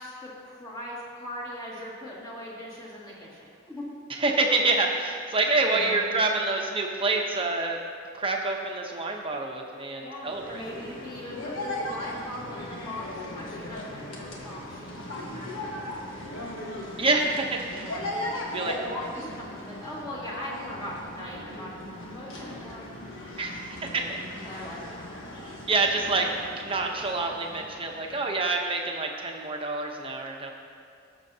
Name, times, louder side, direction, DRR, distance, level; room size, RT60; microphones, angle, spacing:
voice 1, 0.0-3.9 5.6-6.1 10.0-16.3 17.7-22.9 23.1-23.3 23.7-25.1, left 1 dB, 20° left, -7 dB, 2.3 m, -41 dB
voice 2, 4.2-7.8 8.1-10.6 17.0-17.9 18.5-18.7 23.4-24.2 25.7-26.3 26.6-30.5, right 3 dB, 25° right, 1 dB, 0.9 m, -27 dB
sound 1, 10.2-28.7, left 1 dB, 75° left, 1.4 m, -38 dB
17.0 x 7.0 x 2.9 m, 2.3 s
head